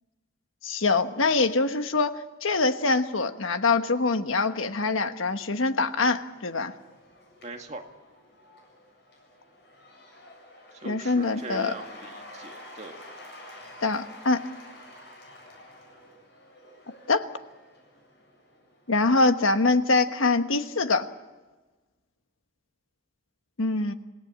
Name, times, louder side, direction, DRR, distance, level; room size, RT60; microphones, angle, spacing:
voice 1, 0.6-6.7 10.8-11.7 13.8-14.4 17.1-17.3 18.9-21.1 23.6-23.9, left 3 dB, 80° left, 9 dB, 1.3 m, -24 dB
Cheering / Applause / Crowd, 5.7-19.1, left 1 dB, 55° left, 7.4 m, -49 dB
voice 2, 7.4-7.8 10.8-13.0, right 2 dB, 35° right, 3 dB, 1.9 m, -41 dB
27.0 x 17.5 x 8.7 m, 1.2 s
head